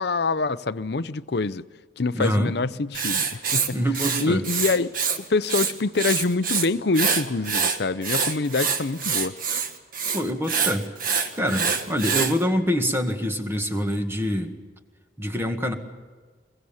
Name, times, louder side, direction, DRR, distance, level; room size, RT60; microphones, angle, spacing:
voice 1, 0.0-1.6 2.0-3.8 4.2-4.9 5.3-9.3, left 3 dB, 60° left, 0.6 m, -25 dB
voice 2, 2.1-2.5 3.7-4.4 10.1-10.9 11.4-14.6 15.2-15.7, equal, 15° right, 1.8 m, -25 dB
Writing, 2.9-5.2 5.4-6.7 6.9-12.3, right 6 dB, 50° right, 1.6 m, -25 dB
23.0 x 22.5 x 7.2 m
head